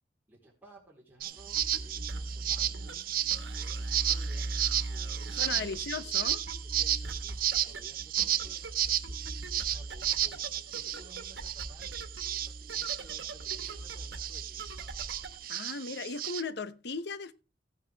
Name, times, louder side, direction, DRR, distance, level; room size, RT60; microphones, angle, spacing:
voice 1, 0.3-3.0 3.6-4.5 4.9-5.4 6.6-14.7, right 2 dB, 10° right, 3.8 m, -57 dB
sound 1, 1.2-16.4, right 12 dB, 55° right, 0.6 m, -33 dB
sound 2, 1.4-15.4, right 2 dB, 75° right, 1.5 m, -40 dB
voice 2, 5.3-6.4 15.5-17.3, left 4 dB, 65° left, 0.8 m, -37 dB
15.0 x 9.2 x 3.4 m
head